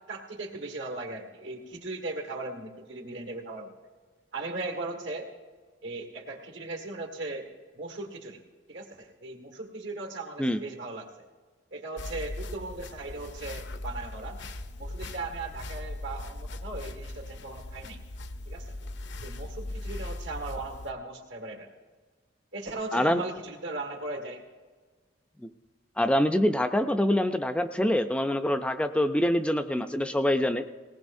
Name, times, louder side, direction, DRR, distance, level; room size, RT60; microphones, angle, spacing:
voice 1, 0.1-3.7 4.3-5.3 5.8-8.4 8.7-11.3 11.7-14.4 14.8-18.0 18.5-18.7 19.2-21.7 22.5-24.4, right 2 dB, 80° right, 3 dB, 1.9 m, -38 dB
sound 1, 12.0-20.9, left 2 dB, 70° left, 0.7 m, -39 dB
voice 2, 22.9-23.2 26.0-30.6, left 1 dB, 5° left, 8 dB, 0.4 m, -25 dB
19.5 x 18.5 x 2.6 m, 1.5 s
head